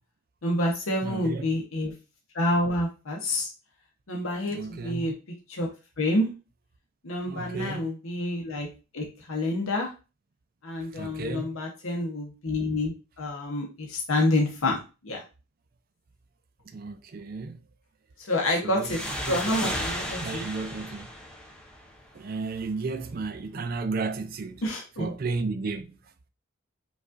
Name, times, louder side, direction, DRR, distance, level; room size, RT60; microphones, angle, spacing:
voice 1, 0.4-1.9 2.3-3.5 4.1-5.1 5.5-5.7 6.0-6.3 7.0-8.7 8.9-9.9 10.6-14.8 15.0-15.2 18.2-19.0 19.3-20.5 24.6-25.1, left 1 dB, 90° left, 0.8 m, -28 dB
voice 2, 1.0-1.5 4.5-5.1 7.2-7.9 10.9-11.5 16.7-17.6 18.6-21.1 22.1-26.1, right 4 dB, 45° right, 0.4 m, -34 dB
sound 1, 18.8-22.2, equal, 5° left, 0.6 m, -34 dB
5.0 x 2.4 x 2.5 m
head